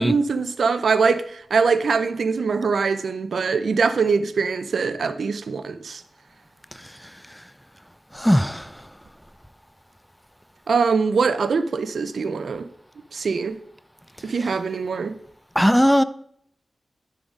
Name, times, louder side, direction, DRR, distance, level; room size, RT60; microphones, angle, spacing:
voice 1, 0.0-6.0 10.7-12.7 13.1-13.6 14.2-15.2, right 5 dB, 80° right, 0.5 m, -23 dB
voice 2, 8.1-8.7 15.6-16.0, equal, ahead, 0.3 m, -18 dB
10.0 x 3.9 x 5.1 m
wide cardioid pair, 120°, 0 cm